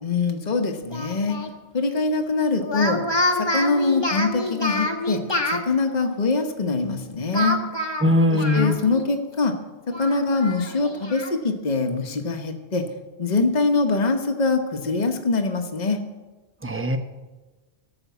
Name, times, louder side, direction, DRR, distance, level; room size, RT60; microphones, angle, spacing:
voice 1, 0.0-1.4 1.7-3.0 3.4-5.2 5.5-7.6 8.3-9.5 10.0-12.9 13.2-16.0, left 3 dB, 40° left, 4 dB, 1.2 m, -23 dB
Speech, 0.9-1.5 2.6-5.6 7.3-9.1 9.4-9.5 9.9-11.3, left 1 dB, 25° left, 1.1 m, -27 dB
voice 2, 8.0-8.8 16.6-17.0, left 1 dB, 15° right, 7 dB, 0.8 m, -20 dB
13.5 x 7.0 x 8.2 m, 1.2 s
omnidirectional pair, 1.1 m